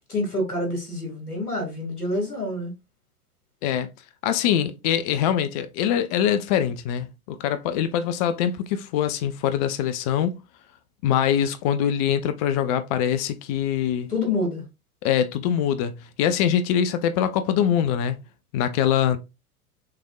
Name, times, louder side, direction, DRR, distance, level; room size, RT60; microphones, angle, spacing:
voice 1, 0.1-2.7 14.1-14.7, left 2 dB, 85° left, 2.5 m, -27 dB
voice 2, 4.2-10.4 11.0-14.1 15.0-18.2 18.5-19.2, left 9 dB, 30° left, 0.4 m, -23 dB
6.4 x 3.5 x 2.4 m
figure-of-eight pair, 90°, 44 cm